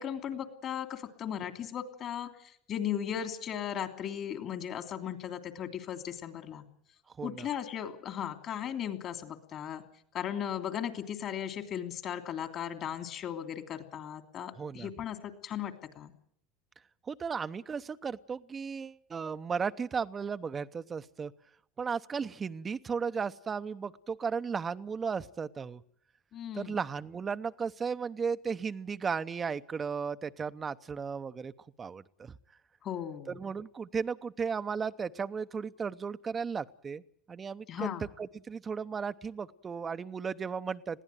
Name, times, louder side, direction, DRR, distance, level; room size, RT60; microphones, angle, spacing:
voice 1, 0.0-2.3 2.7-6.6 7.2-9.8 10.1-16.1 26.3-26.8 32.8-33.3 37.7-38.1, left 9 dB, 50° left, 7 dB, 3.1 m, -37 dB
voice 2, 14.6-14.9 17.1-21.3 21.8-25.8 26.5-31.5 31.8-32.3 33.3-37.0 37.3-37.9 38.2-41.0, right 6 dB, 30° right, 11 dB, 0.8 m, -35 dB
21.5 x 16.0 x 9.2 m, 0.67 s
hypercardioid pair, 80°, 0 cm